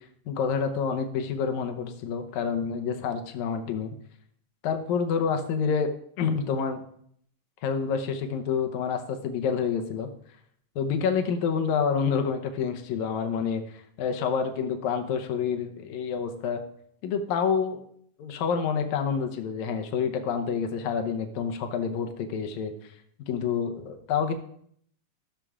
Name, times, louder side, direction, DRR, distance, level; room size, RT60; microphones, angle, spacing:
voice 1, 0.3-3.9 4.6-5.9 6.2-6.8 7.6-10.1 10.8-16.6 17.0-17.8 18.2-22.7 23.2-24.3, left 6 dB, 75° left, 6 dB, 2.1 m, -28 dB
16.0 x 6.7 x 2.4 m, 0.67 s
omnidirectional pair, 3.5 m